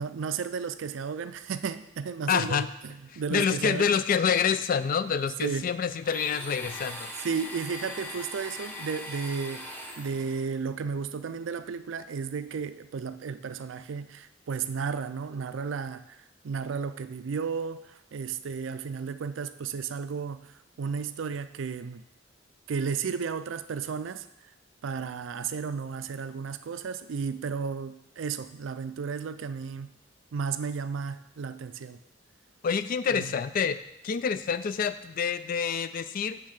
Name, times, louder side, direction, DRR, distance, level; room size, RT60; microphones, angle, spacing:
voice 1, 0.0-3.9 5.4-5.7 7.2-16.0 16.4-20.5 20.8-22.0 22.7-24.3 24.8-29.9 30.3-32.0 33.1-33.3, right 6 dB, 70° right, 12 dB, 0.4 m, -33 dB
voice 2, 2.3-2.7 3.1-7.1 32.6-33.8 34.0-36.4, left 6 dB, 45° left, 13 dB, 0.3 m, -27 dB
Domestic sounds home sounds, 6.0-10.5, left 1 dB, 10° left, 0.9 m, -40 dB
7.6 x 3.6 x 6.5 m, 0.84 s
head